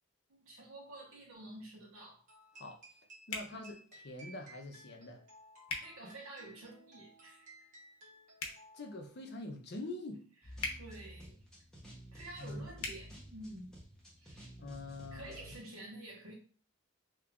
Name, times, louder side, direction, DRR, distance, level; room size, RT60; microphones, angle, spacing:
voice 1, 0.3-2.2 5.7-7.5 10.8-11.4 12.1-13.7 14.2-14.5 15.1-16.3, right 1 dB, 80° right, 1.1 m, -49 dB
sound 1, 2.3-9.1, right 1 dB, 35° right, 0.8 m, -58 dB
sound 2, 3.3-3.5 5.7-5.9 8.3-8.6 10.6-10.8 12.8-13.0, left 4 dB, 85° left, 0.7 m, -38 dB
voice 2, 3.3-5.2 8.7-10.2 12.4-12.7 14.6-15.5, left 2 dB, 50° left, 0.6 m, -45 dB
sound 3, 10.4-15.6, equal, 5° left, 0.7 m, -52 dB
2.9 x 2.4 x 3.5 m
head